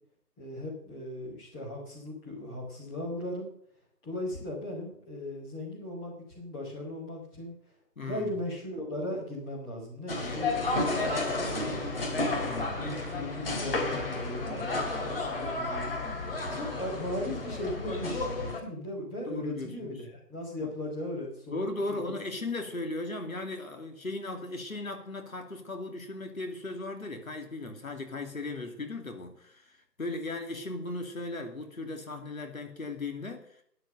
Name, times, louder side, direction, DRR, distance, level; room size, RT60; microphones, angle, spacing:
voice 1, 0.4-3.5 4.0-7.5 8.0-12.3 12.8-15.9 16.5-22.2, left 1 dB, 5° left, 2.3 m, -38 dB
voice 2, 8.0-8.3 10.2-10.5 12.2-12.8 19.3-19.9 20.6-20.7 21.5-33.6, left 2 dB, 55° left, 2.5 m, -37 dB
sound 1, 10.1-18.6, left 2 dB, 35° left, 2.8 m, -32 dB
12.5 x 10.5 x 6.5 m
figure-of-eight pair, 160°, 48 cm